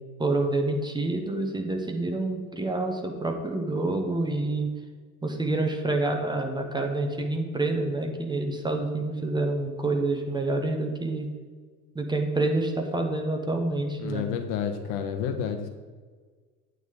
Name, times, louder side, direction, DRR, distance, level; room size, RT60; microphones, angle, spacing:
voice 1, 0.2-4.7 5.2-11.3 11.9-14.2, right 2 dB, 10° right, 3 dB, 1.1 m, -27 dB
voice 2, 14.0-15.7, left 7 dB, 50° left, 6 dB, 1.1 m, -30 dB
9.0 x 3.8 x 6.7 m, 1.5 s
figure-of-eight pair, 75°, 46 cm